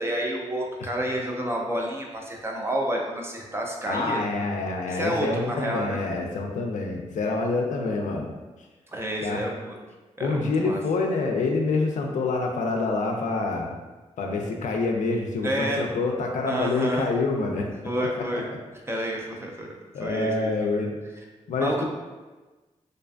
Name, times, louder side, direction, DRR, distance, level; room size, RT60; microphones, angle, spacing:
voice 1, 0.0-4.2 4.9-6.0 8.9-9.8 10.2-10.8 15.4-15.8 16.5-17.1 17.8-18.4 18.9-19.7 20.0-20.9 21.6-21.8, right 1 dB, 20° right, -1 dB, 0.5 m, -29 dB
voice 2, 3.9-8.3 9.2-9.4 10.2-13.7 14.2-17.7 19.9-20.9 21.5-21.8, left 3 dB, 75° left, 1 dB, 0.4 m, -26 dB
2.5 x 2.3 x 2.3 m, 1.2 s
cardioid pair, 60°, 13 cm